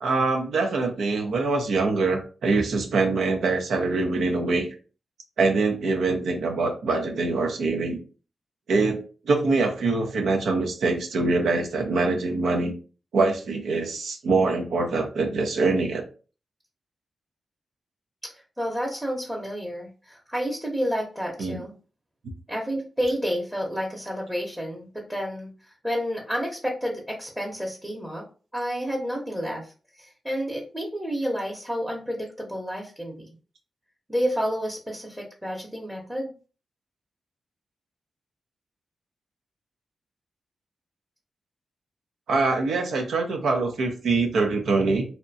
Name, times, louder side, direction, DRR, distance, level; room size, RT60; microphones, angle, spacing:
voice 1, 0.0-4.7 5.4-8.0 8.7-9.0 9.3-12.7 13.1-16.0 21.4-21.6 42.3-45.0, right 3 dB, 85° right, 3 dB, 0.5 m, -24 dB
voice 2, 18.6-21.7 22.5-25.5 25.8-28.2 28.5-29.7 30.0-33.2 34.1-36.3, equal, 10° right, -1 dB, 0.8 m, -30 dB
2.7 x 2.1 x 2.6 m, 0.37 s
cardioid pair, 55°, 0 cm